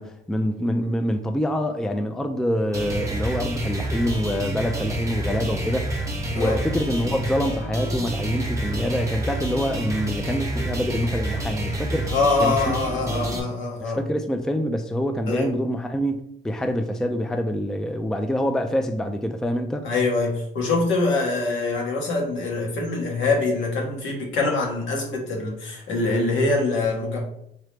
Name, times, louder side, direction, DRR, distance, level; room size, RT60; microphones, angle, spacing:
voice 1, 0.0-6.0 6.3-12.1 12.4-13.2 13.8-19.9, equal, 5° left, 6 dB, 0.3 m, -26 dB
sound 1, 2.7-13.4, right 1 dB, 15° right, 0.9 m, -28 dB
voice 2, 12.1-14.0 15.3-15.5 19.8-27.2, left 3 dB, 75° left, -1 dB, 1.3 m, -24 dB
3.7 x 3.0 x 3.3 m, 0.72 s
cardioid pair, 90°, 20 cm